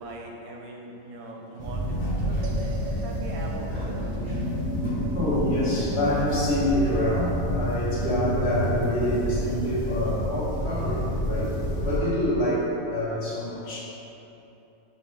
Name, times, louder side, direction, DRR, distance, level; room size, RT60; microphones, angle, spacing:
voice 1, 0.0-4.5, right 1 dB, 85° right, -1 dB, 1.1 m, -40 dB
sound 1, 1.6-12.0, equal, 5° right, 0.9 m, -29 dB
sound 2, 2.4-12.9, right 3 dB, 65° right, 0.6 m, -46 dB
voice 2, 4.8-13.8, left 1 dB, 50° left, -8 dB, 1.1 m, -27 dB
5.6 x 2.8 x 3.1 m, 3.0 s
omnidirectional pair, 1.5 m